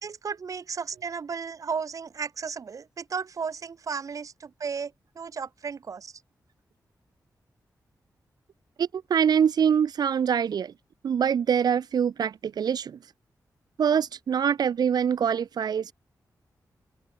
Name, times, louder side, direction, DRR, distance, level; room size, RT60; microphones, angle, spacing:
voice 1, 0.0-6.1, right 5 dB, 55° right, 3.1 m, -34 dB
voice 2, 8.8-10.7 11.0-13.0 13.8-15.9, right 7 dB, 90° right, 2.4 m, -24 dB
open air
wide cardioid pair, 130°, 7 cm